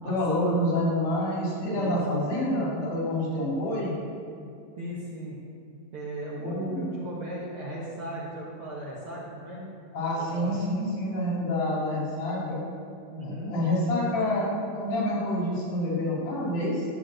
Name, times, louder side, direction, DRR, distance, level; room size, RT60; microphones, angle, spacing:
voice 1, 0.0-4.0 6.4-6.9 9.9-12.6 13.2-16.8, left 1 dB, 85° left, -6 dB, 5.0 m, -27 dB
voice 2, 4.8-5.4 5.9-9.7 10.2-10.5 13.1-13.6, right 1 dB, 55° right, -5 dB, 1.6 m, -37 dB
12.5 x 5.0 x 7.6 m, 2.5 s
omnidirectional pair, 4.1 m